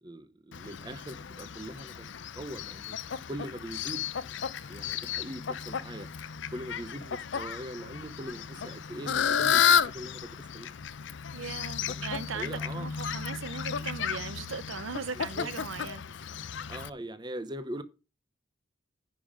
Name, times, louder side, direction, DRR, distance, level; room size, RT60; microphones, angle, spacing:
voice 1, 0.0-2.1 2.4-3.0 3.3-4.0 4.7-6.1 6.5-10.7 11.9-12.0 12.3-12.9 15.1-15.5 16.7-17.8, right 1 dB, 20° right, 0.7 m, -41 dB
Fowl, 0.5-16.9, left 7 dB, 65° left, 0.5 m, -32 dB
voice 2, 11.3-16.0, right 5 dB, 85° right, 0.8 m, -38 dB
10.5 x 5.3 x 5.1 m
head